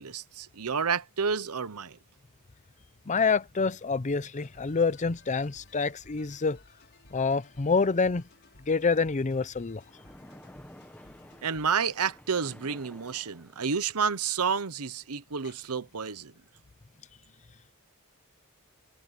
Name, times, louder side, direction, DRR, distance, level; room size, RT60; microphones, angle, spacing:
voice 1, 0.0-2.0 11.4-16.3, right 6 dB, 80° right, 1.0 m, -30 dB
voice 2, 3.1-6.6 7.1-8.2 8.7-9.8, left 4 dB, 35° left, 0.6 m, -27 dB
sound 1, 4.3-12.3, left 2 dB, 50° left, 4.9 m, -58 dB
Splash splatter, 9.9-13.9, left 1 dB, 5° left, 1.1 m, -52 dB
head